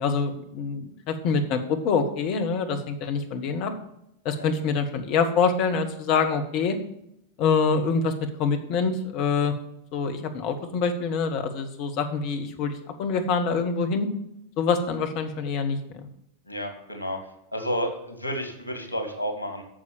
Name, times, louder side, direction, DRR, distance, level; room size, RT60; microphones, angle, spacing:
voice 1, 0.0-3.7 4.2-6.8 7.4-8.1 8.4-9.5 9.9-14.1 14.6-15.8, left 5 dB, 45° left, 7 dB, 1.4 m, -25 dB
voice 2, 16.5-17.2 17.5-19.6, equal, 90° right, 5 dB, 2.1 m, -31 dB
8.9 x 7.0 x 7.1 m, 0.79 s
figure-of-eight pair, 90°, 0 cm